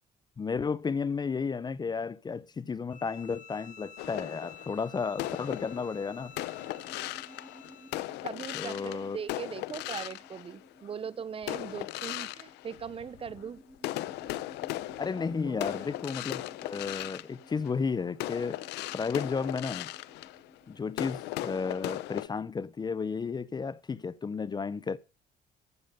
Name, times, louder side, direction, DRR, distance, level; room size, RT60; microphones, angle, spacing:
voice 1, 0.4-6.3 8.5-9.2 15.0-18.6 18.9-19.9 20.7-25.0, left 5 dB, 25° left, 0.6 m, -33 dB
Bowed string instrument, 2.9-8.1, left 6 dB, 50° left, 2.8 m, -51 dB
sound 1, 4.0-10.9 11.4-13.4 13.8-22.3, left 16 dB, 85° left, 0.7 m, -38 dB
sound 2, 6.2-21.6, equal, ahead, 1.9 m, -56 dB
voice 2, 8.2-13.6 15.4-15.9, right 7 dB, 35° right, 0.7 m, -40 dB
15.0 x 7.0 x 5.4 m
cardioid pair, 110°, 17 cm